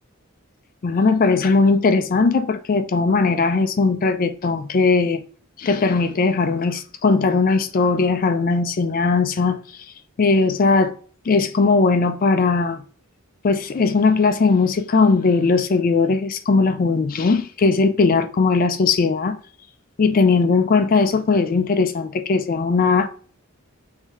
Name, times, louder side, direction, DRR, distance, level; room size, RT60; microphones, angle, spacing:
voice 1, 0.8-5.2 5.6-9.6 10.2-10.9 11.3-12.8 13.4-19.4 20.0-23.1, left 4 dB, 40° left, 0.4 m, -18 dB
3.7 x 2.7 x 4.7 m
head